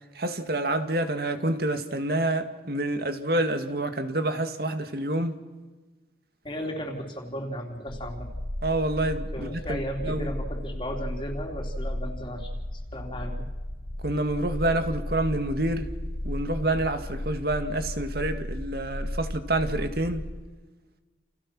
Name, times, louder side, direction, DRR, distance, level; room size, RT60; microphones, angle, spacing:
voice 1, 0.2-5.4 8.6-10.3 14.0-15.9 16.2-20.2, right 1 dB, 55° right, 2.1 m, -28 dB
voice 2, 6.4-8.3 9.3-13.5, equal, 25° left, 3.6 m, -35 dB
sound 1, 7.9-20.4, left 1 dB, 45° left, 1.3 m, -35 dB
30.0 x 29.5 x 6.3 m
head